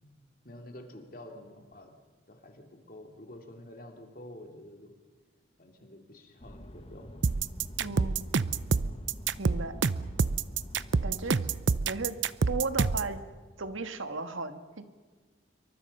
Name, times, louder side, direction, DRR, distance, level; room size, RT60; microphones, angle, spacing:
voice 1, 0.4-1.9 2.3-4.9 5.6-7.2 7.8-7.9, left 1 dB, 45° left, 3 dB, 2.9 m, -48 dB
sound 1, 6.4-11.4, equal, 30° left, 1.3 m, -46 dB
sound 2, 7.2-13.1, right 4 dB, 70° right, 0.6 m, -27 dB
voice 2, 7.8-8.3 9.4-9.8 11.0-11.4 11.9-12.2 12.5-13.2 13.6-14.9, right 3 dB, 90° right, 8 dB, 1.7 m, -35 dB
27.5 x 24.0 x 5.6 m, 1.4 s
head